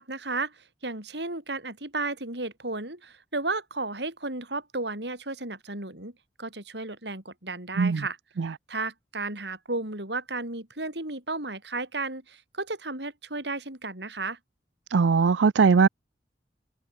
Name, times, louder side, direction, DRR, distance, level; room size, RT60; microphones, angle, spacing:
voice 1, 0.0-6.1 6.4-8.2 8.7-14.4, right 3 dB, 70° right, 7.2 m, -33 dB
voice 2, 14.9-15.9, right 5 dB, 85° right, 0.5 m, -20 dB
head